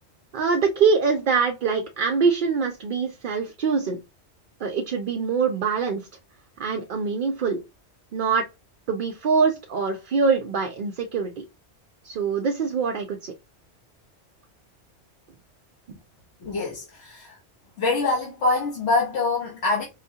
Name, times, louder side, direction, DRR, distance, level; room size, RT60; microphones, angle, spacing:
voice 1, 0.3-4.0 4.6-6.1 6.6-7.6 8.1-8.4 8.9-11.5 12.0-13.3 15.9-16.0, right 5 dB, 60° right, 0.6 m, -24 dB
voice 2, 16.4-17.4 17.8-19.8, left 3 dB, 75° left, 1.3 m, -25 dB
4.8 x 2.2 x 2.7 m
omnidirectional pair, 1.2 m